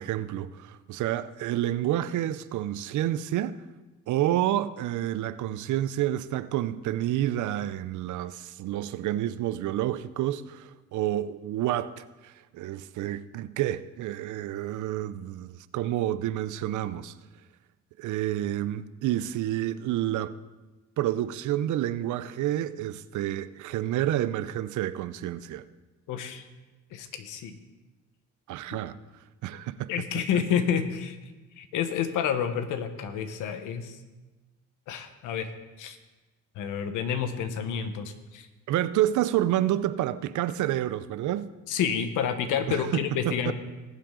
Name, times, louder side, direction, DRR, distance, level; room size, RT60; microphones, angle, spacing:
voice 1, 0.0-3.6 4.1-17.1 18.0-20.3 21.0-25.6 28.5-29.0 29.4-29.9 38.7-41.5 42.7-43.5, right 13 dB, 75° right, 0.6 m, -29 dB
voice 2, 26.1-26.4 26.9-27.6 28.7-28.8 29.9-31.2 31.6-34.0 34.9-35.5 35.8-36.0 36.6-38.5 41.7-43.5, left 8 dB, 90° left, 1.2 m, -29 dB
20.0 x 7.6 x 3.8 m
cardioid pair, 110°, 30 cm